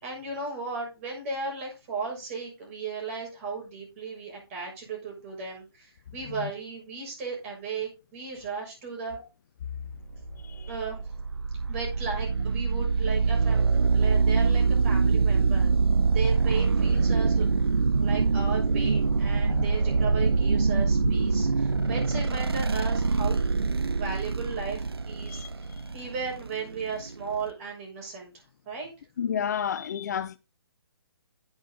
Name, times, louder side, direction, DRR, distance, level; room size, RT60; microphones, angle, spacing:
voice 1, 0.0-9.2 10.7-11.0 11.7-13.6 13.9-15.7 16.1-17.5 17.9-23.4 23.9-28.3 28.6-28.9, right 4 dB, 30° right, 6.3 m, -36 dB
sound 1, 10.1-27.5, right 4 dB, 75° right, 0.6 m, -24 dB
voice 2, 10.4-10.7 19.6-19.7 21.7-21.8 25.2-26.0 29.2-30.4, left 8 dB, 45° left, 0.6 m, -32 dB
10.0 x 8.9 x 3.8 m
figure-of-eight pair, 135°, 13 cm